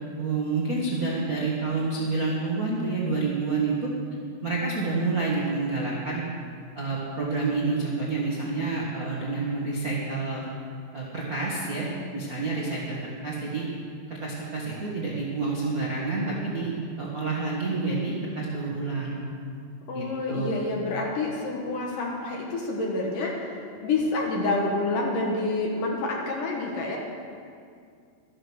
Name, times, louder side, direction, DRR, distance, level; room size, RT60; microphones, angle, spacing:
voice 1, 0.1-3.9 4.4-6.2 6.7-10.4 10.9-13.0 13.2-13.7 14.1-19.2 19.9-20.5, right 3 dB, 55° right, -6 dB, 0.9 m, -28 dB
voice 2, 19.9-23.5 23.8-27.0, left 2 dB, 65° left, -1 dB, 2.5 m, -28 dB
13.0 x 10.5 x 6.3 m, 2.3 s
omnidirectional pair, 4.8 m